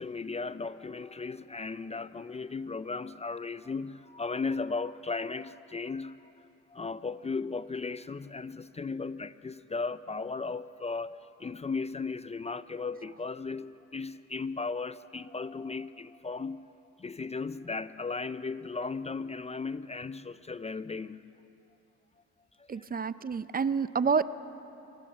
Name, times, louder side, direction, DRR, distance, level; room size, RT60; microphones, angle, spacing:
voice 1, 0.0-16.7 17.0-21.3 22.6-22.9, left 4 dB, 20° left, 0.5 m, -36 dB
voice 2, 22.7-24.2, right 5 dB, 30° right, 0.6 m, -28 dB
25.5 x 18.0 x 6.8 m
cardioid pair, 90°, 30 cm